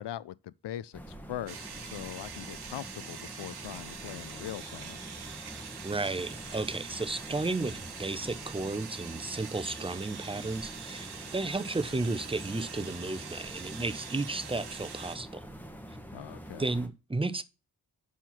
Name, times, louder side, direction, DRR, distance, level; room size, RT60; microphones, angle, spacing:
voice 1, 0.0-5.0 16.1-16.7, left 12 dB, 70° left, 0.5 m, -41 dB
sound 1, 0.9-16.9, equal, 5° left, 1.3 m, -46 dB
sound 2, 1.5-15.2, right 6 dB, 60° right, 1.1 m, -44 dB
voice 2, 5.8-15.5 16.6-17.4, right 2 dB, 15° right, 0.7 m, -33 dB
5.8 x 4.5 x 5.8 m
cardioid pair, 45°, 43 cm